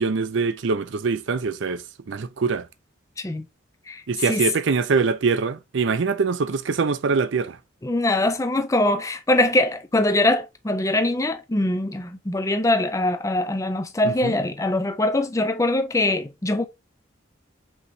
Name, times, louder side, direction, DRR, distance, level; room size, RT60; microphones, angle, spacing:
voice 1, 0.0-2.7 4.1-7.6 14.0-14.3, right 4 dB, 65° right, 0.5 m, -24 dB
voice 2, 3.9-4.4 7.8-16.7, left 2 dB, 15° left, 0.4 m, -23 dB
5.3 x 3.1 x 2.6 m
head